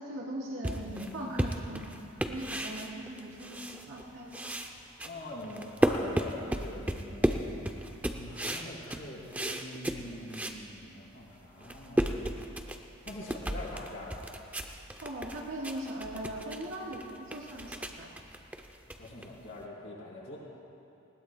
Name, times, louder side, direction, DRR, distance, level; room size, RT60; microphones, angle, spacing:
voice 1, 0.0-1.9 2.3-4.5 13.4-13.6 15.0-18.1, right 1 dB, 70° right, -4 dB, 3.2 m, -40 dB
sound 1, 0.6-4.0 4.3-10.6 11.1-11.2 11.5-19.6, right 1 dB, 5° right, 0.4 m, -34 dB
voice 2, 5.0-7.2 8.1-12.3 13.0-14.3 19.0-20.4, left 1 dB, 55° left, -6 dB, 3.8 m, -43 dB
20.0 x 18.0 x 2.2 m, 2.7 s
head